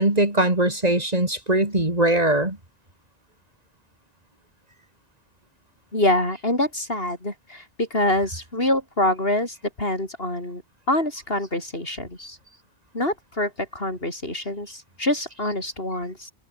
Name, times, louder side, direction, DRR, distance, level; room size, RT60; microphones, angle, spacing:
voice 1, 0.0-2.6, right 1 dB, 35° right, 4.6 m, -21 dB
voice 2, 5.9-10.6 10.9-12.4 12.9-16.3, left 1 dB, 65° left, 6.6 m, -25 dB
omnidirectional pair, 1.1 m